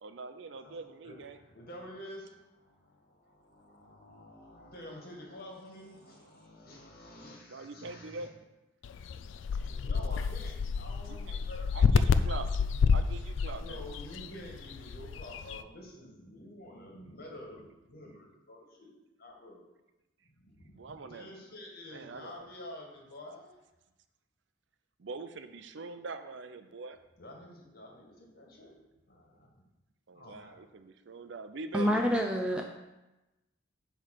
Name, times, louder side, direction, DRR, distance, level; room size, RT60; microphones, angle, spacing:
voice 1, 0.0-1.4 7.5-8.3 11.1-11.4 11.7-13.8 20.7-21.3 21.9-22.5 25.0-27.0 30.1-32.0, right 3 dB, 65° right, 9 dB, 0.5 m, -43 dB
voice 2, 0.6-8.3 9.5-11.9 12.8-12.9 13.5-19.6 20.4-23.6 27.2-28.8 29.1-29.6 30.1-30.7, left 1 dB, 50° left, -1 dB, 1.9 m, -49 dB
sound 1, 8.8-15.6, left 5 dB, 70° left, 0.4 m, -29 dB
voice 3, 31.7-32.6, equal, 5° right, 2 dB, 0.5 m, -27 dB
9.7 x 3.3 x 6.5 m, 1.0 s
head